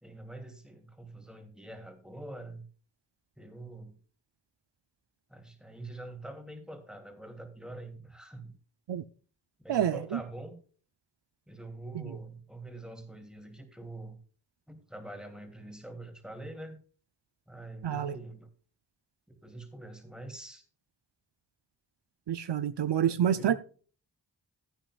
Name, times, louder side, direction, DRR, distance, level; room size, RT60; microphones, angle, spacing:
voice 1, 0.0-2.7 3.4-4.0 5.3-8.6 9.6-10.6 11.5-14.2 14.7-16.8 17.5-18.5 19.3-20.6 23.0-23.5, right 1 dB, ahead, 2.7 m, -45 dB
voice 2, 9.7-10.2 17.8-18.2 22.3-23.5, right 9 dB, 75° right, 0.6 m, -28 dB
15.5 x 8.9 x 2.4 m
cardioid pair, 40°, 42 cm